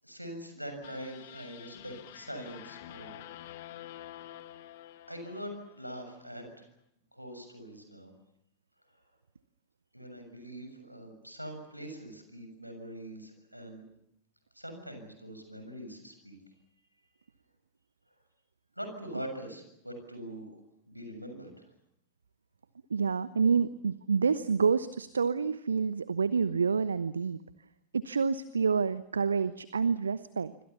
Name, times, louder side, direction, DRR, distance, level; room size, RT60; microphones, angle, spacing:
voice 1, 0.0-3.2 5.1-6.7 7.1-8.1 9.9-13.8 14.5-16.4 18.8-20.5 20.9-21.6, equal, 90° right, 6 dB, 6.9 m, -43 dB
sound 1, 0.8-6.1, left 13 dB, 55° left, 1.7 m, -48 dB
voice 2, 22.9-27.4 27.9-30.5, right 5 dB, 75° right, 16 dB, 0.9 m, -28 dB
26.5 x 25.5 x 7.1 m, 0.80 s
figure-of-eight pair, 90°, 0 cm